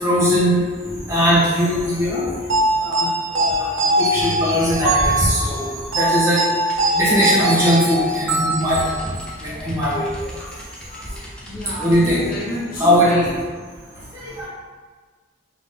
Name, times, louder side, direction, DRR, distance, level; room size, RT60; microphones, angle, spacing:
voice 1, 0.0-0.6 1.1-2.2 2.8-3.1 3.3-6.4 6.9-8.8 9.4-10.0 10.9-11.0 11.8-12.2 12.8-13.3 14.1-14.5, equal, 15° right, -9 dB, 1.2 m, -19 dB
sound 1, 2.5-9.4, right 1 dB, 80° right, 0.6 m, -22 dB
sound 2, 6.7-12.5, equal, 5° left, 0.5 m, -38 dB
voice 2, 11.4-13.4, left 1 dB, 45° left, -4 dB, 0.7 m, -30 dB
3.8 x 3.0 x 3.8 m, 1.5 s
head